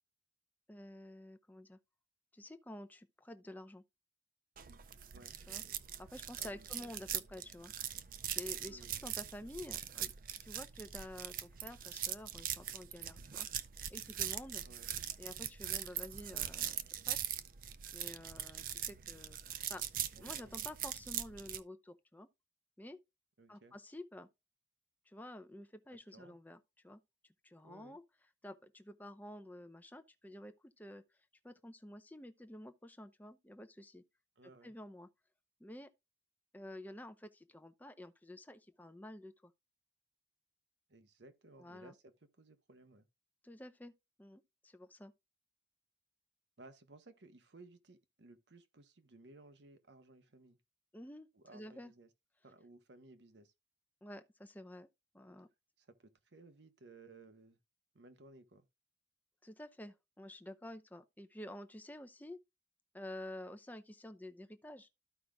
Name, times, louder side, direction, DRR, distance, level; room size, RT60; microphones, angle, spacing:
voice 1, 0.7-1.8 2.3-3.8 5.5-5.6 6.0-7.7 8.3-10.1 10.4-13.5 13.9-14.6 15.2-17.2 17.9-22.3 22.8-23.0 23.5-24.3 25.1-27.0 27.4-28.0 28.4-31.0 31.4-34.0 34.4-35.1 35.6-35.9 36.5-39.5 41.6-41.9 43.4-43.9 44.2-45.1 50.9-51.9 54.0-54.9 55.1-55.5 59.4-62.4 62.9-64.9, left 1 dB, 10° left, 0.6 m, -50 dB
sound 1, 4.6-21.6, right 11 dB, 50° right, 0.5 m, -42 dB
voice 2, 6.4-7.2 8.6-9.0 14.6-14.9 20.1-20.5 23.4-23.7 25.9-26.4 27.6-28.0 34.4-34.7 40.9-43.1 46.6-50.6 51.3-52.1 52.4-53.5 55.8-57.6 57.9-58.6, right 2 dB, 75° right, 1.0 m, -59 dB
13.5 x 5.0 x 2.3 m
head